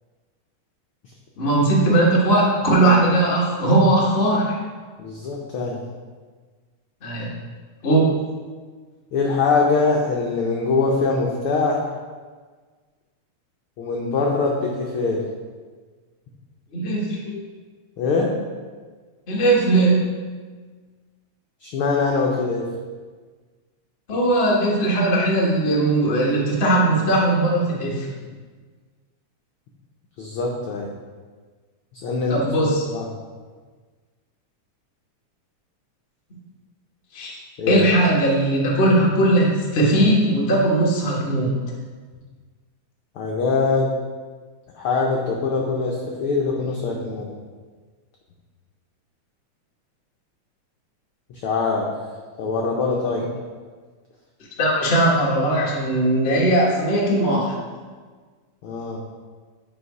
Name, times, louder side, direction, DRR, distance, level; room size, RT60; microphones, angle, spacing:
voice 1, 1.4-4.6 7.0-7.3 7.8-8.2 16.7-17.2 19.3-20.1 24.1-28.1 32.3-32.8 37.1-37.4 37.7-41.5 53.1-53.2 54.6-57.6, right 1 dB, 45° left, -4 dB, 0.7 m, -19 dB
voice 2, 5.0-5.8 9.1-11.9 13.8-15.2 17.3-17.4 18.0-18.3 21.6-22.7 30.2-30.9 31.9-32.4 32.9-33.1 37.6-37.9 43.2-43.9 44.7-47.3 51.3-51.9 52.4-53.2 58.6-59.0, left 4 dB, 80° left, -1 dB, 1.2 m, -23 dB
9.5 x 3.3 x 4.8 m, 1.5 s
omnidirectional pair, 3.3 m